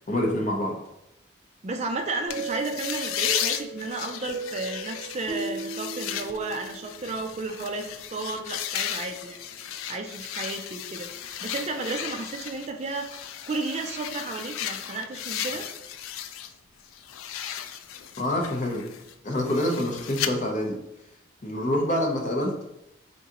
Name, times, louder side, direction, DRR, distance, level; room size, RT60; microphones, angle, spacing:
voice 1, 0.1-0.8 18.2-18.8 19.2-20.8 21.4-22.6, left 1 dB, 40° left, 1 dB, 0.7 m, -26 dB
voice 2, 1.6-15.7, right 3 dB, 35° right, 5 dB, 0.3 m, -33 dB
sound 1, 2.3-16.5 16.8-20.3, left 10 dB, 85° left, 0.3 m, -35 dB
sound 2, 2.3-7.0, right 4 dB, 70° right, 1.3 m, -36 dB
3.8 x 3.6 x 2.8 m, 0.86 s
head